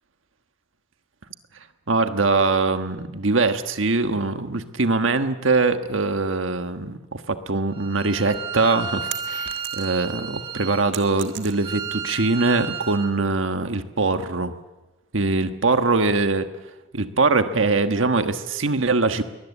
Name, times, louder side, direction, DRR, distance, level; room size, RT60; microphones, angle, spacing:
voice 1, 1.9-14.5 15.1-16.5 16.9-19.2, right 3 dB, 75° right, 8 dB, 1.4 m, -22 dB
Bowed string instrument, 7.7-13.1, right 6 dB, 25° right, 2.2 m, -33 dB
sound 1, 9.1-10.1 10.5-11.9, right 11 dB, 60° right, 1.6 m, -37 dB
22.5 x 20.0 x 8.3 m, 1.1 s
head